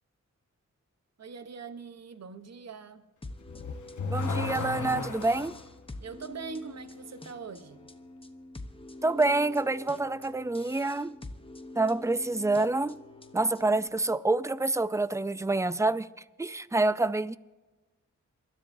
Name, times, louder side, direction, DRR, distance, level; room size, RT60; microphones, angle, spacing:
voice 1, 1.2-3.0 6.0-7.9, right 5 dB, 55° right, 1.0 m, -42 dB
sound 1, 3.2-13.9, left 2 dB, 15° left, 0.9 m, -46 dB
Car / Accelerating revving vroom, 3.4-5.7, left 4 dB, 70° left, 1.1 m, -33 dB
voice 2, 4.1-5.5 9.0-11.1 11.8-13.0 13.3-16.1 16.4-17.4, right 2 dB, 10° right, 0.4 m, -27 dB
28.0 x 13.0 x 2.7 m
wide cardioid pair, 115°, 31 cm